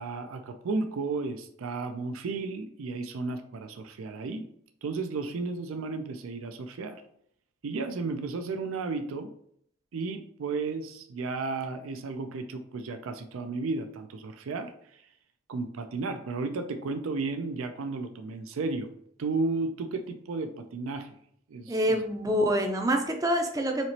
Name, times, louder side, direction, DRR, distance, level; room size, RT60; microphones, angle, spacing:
voice 1, 0.0-4.5 4.8-7.0 7.6-9.3 9.9-15.0 15.5-18.9 19.2-21.2 21.5-22.0, right 3 dB, 85° right, 8 dB, 0.4 m, -33 dB
voice 2, 21.7-23.9, equal, 15° right, 4 dB, 0.4 m, -26 dB
4.3 x 2.9 x 2.8 m, 0.66 s
head